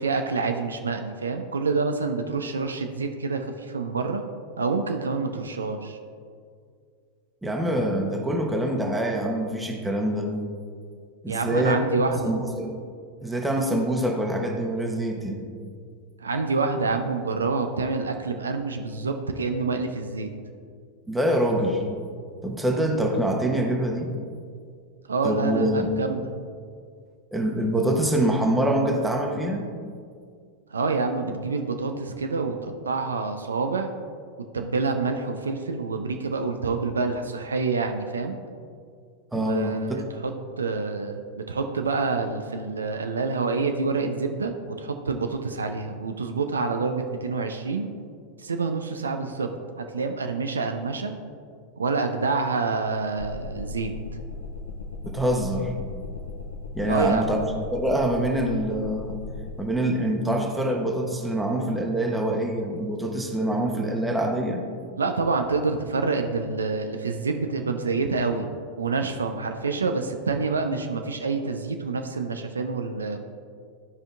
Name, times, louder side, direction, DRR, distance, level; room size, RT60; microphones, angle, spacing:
voice 1, 0.0-4.2 4.6-6.0 11.3-12.3 16.2-20.3 25.1-26.3 30.7-33.9 34.5-38.4 39.3-47.9 48.4-49.5 49.8-51.1 51.8-53.9 56.9-57.3 65.0-68.5 68.8-73.2, right 4 dB, 75° right, 6 dB, 0.4 m, -27 dB
voice 2, 7.4-10.3 11.2-11.8 12.2-12.8 13.2-15.5 21.1-21.8 22.4-24.1 25.2-25.9 27.3-29.7 39.3-40.0 55.0-55.7 56.7-57.4 57.7-59.2 59.6-64.6, right 1 dB, 5° right, 1 dB, 0.9 m, -25 dB
sound 1, 53.2-59.6, left 3 dB, 80° left, 0.7 m, -37 dB
12.5 x 5.1 x 2.4 m, 2.2 s
figure-of-eight pair, 90°, 0 cm